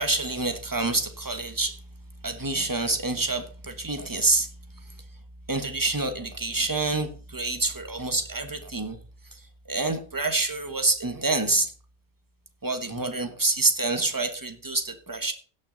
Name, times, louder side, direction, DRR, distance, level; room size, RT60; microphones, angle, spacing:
voice 1, 0.0-1.8 2.2-4.5 5.5-9.0 9.3-9.4 9.7-11.7 12.6-15.3, right 3 dB, 20° right, 1.1 m, -27 dB
16.5 x 6.1 x 3.9 m
omnidirectional pair, 1.1 m